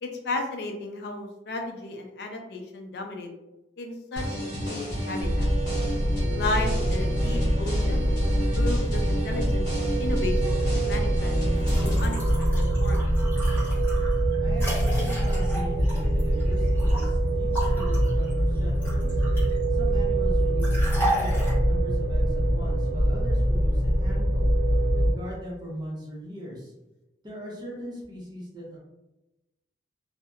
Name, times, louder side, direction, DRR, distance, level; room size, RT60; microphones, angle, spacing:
voice 1, 0.0-3.3 3.8-4.2 4.7-5.5 6.3-8.1 8.5-11.4 11.8-12.2 12.5-13.0, left 2 dB, 65° left, 3 dB, 0.4 m, -34 dB
sound 1, 4.2-12.1, left 1 dB, 45° left, 0.9 m, -33 dB
sound 2, 5.2-25.1, right 1 dB, 90° right, 0.7 m, -24 dB
sound 3, 11.6-17.1 17.5-19.6 20.6-21.5, right 1 dB, 10° left, 1.0 m, -34 dB
voice 2, 14.4-19.2 19.7-24.5 24.8-26.7 27.2-28.8, equal, 25° right, -4 dB, 0.7 m, -39 dB
2.7 x 2.1 x 2.3 m, 0.96 s
head